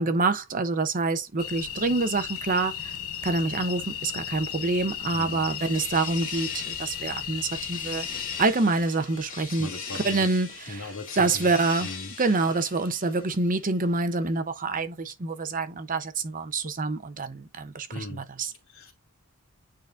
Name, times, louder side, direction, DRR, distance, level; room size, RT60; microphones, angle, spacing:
voice 1, 0.0-3.0 3.2-8.1 8.4-9.7 9.9-10.9 11.2-11.9 12.2-18.5, right 3 dB, 40° right, 0.8 m, -26 dB
sound 1, 1.4-8.5, left 10 dB, 85° left, 1.0 m, -35 dB
sound 2, 4.5-13.6, left 5 dB, 40° left, 2.0 m, -40 dB
voice 2, 5.1-5.5 9.5-10.4 10.7-11.5 11.8-12.1 17.9-18.2 18.7-18.9, left 2 dB, 65° left, 2.6 m, -38 dB
9.3 x 3.9 x 2.6 m
head